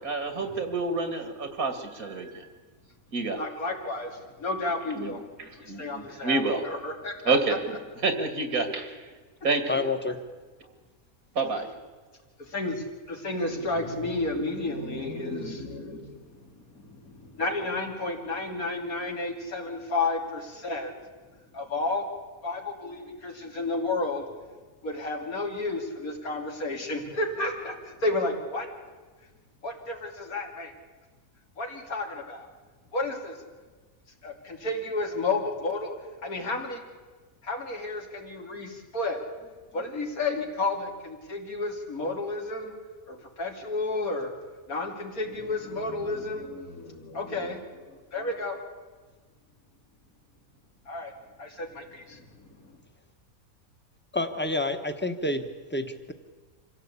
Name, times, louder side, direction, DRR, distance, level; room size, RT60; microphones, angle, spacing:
voice 1, 0.0-2.5 3.1-3.4 4.9-5.1 5.7-6.6 7.2-9.0 9.4-9.8 11.4-11.7, right 3 dB, 85° right, 7 dB, 2.7 m, -28 dB
voice 2, 3.3-7.4 12.4-16.4 16.7-21.0 21.5-22.1 22.4-24.2 24.8-28.7 29.6-30.7 31.6-32.5 32.9-33.4 34.2-35.9 36.2-36.8 37.4-39.2 39.7-42.7 43.1-44.3 44.7-48.6 50.9-51.1 51.4-52.7, left 2 dB, 85° left, 1 dB, 3.4 m, -32 dB
voice 3, 9.7-10.2 54.1-56.1, left 2 dB, 10° left, 7 dB, 1.2 m, -29 dB
26.0 x 16.0 x 8.5 m, 1.4 s
omnidirectional pair, 1.5 m